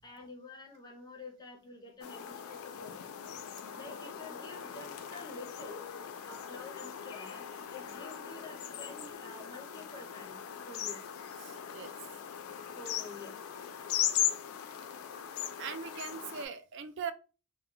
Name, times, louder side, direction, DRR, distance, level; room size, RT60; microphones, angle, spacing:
voice 1, 0.0-3.0 3.7-5.9 6.3-11.0 12.8-13.4, left 2 dB, 20° left, 2 dB, 0.5 m, -49 dB
sound 1, 2.0-16.5, left 9 dB, 75° left, 0.3 m, -39 dB
voice 2, 11.4-11.9 15.6-17.1, right 6 dB, 55° right, 11 dB, 0.3 m, -40 dB
2.2 x 2.0 x 3.6 m, 0.34 s
head